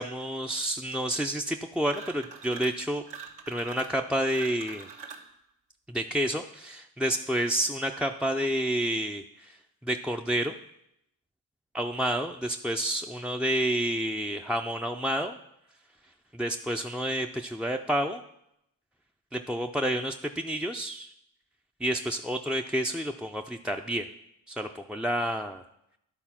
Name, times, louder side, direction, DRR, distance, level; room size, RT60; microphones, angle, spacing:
voice 1, 0.0-3.0 3.5-4.9 5.9-9.6 9.8-10.5 11.7-15.4 16.3-18.2 19.3-21.1 21.8-24.1 24.5-25.6, right 1 dB, ahead, 2 dB, 0.4 m, -29 dB
sound 1, 1.8-2.8 3.1-5.3, right 6 dB, 75° right, 1.3 m, -44 dB
11.0 x 4.0 x 5.8 m, 0.80 s
supercardioid pair, 60°, 42 cm